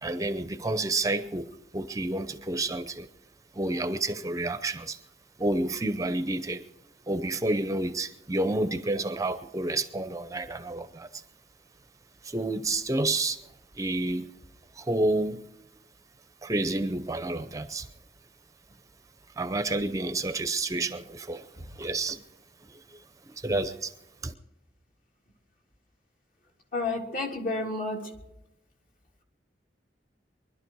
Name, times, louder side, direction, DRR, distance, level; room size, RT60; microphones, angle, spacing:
voice 1, 0.0-3.1 3.5-5.0 5.4-6.6 7.1-11.1 12.2-13.4 13.8-14.3 14.8-15.4 16.4-17.9 19.4-21.5 21.8-22.2 23.4-23.9 24.2-24.3, right 2 dB, 20° right, 0.7 m, -29 dB
voice 2, 26.7-28.1, left 2 dB, 50° left, 3.2 m, -30 dB
23.5 x 12.0 x 4.7 m
head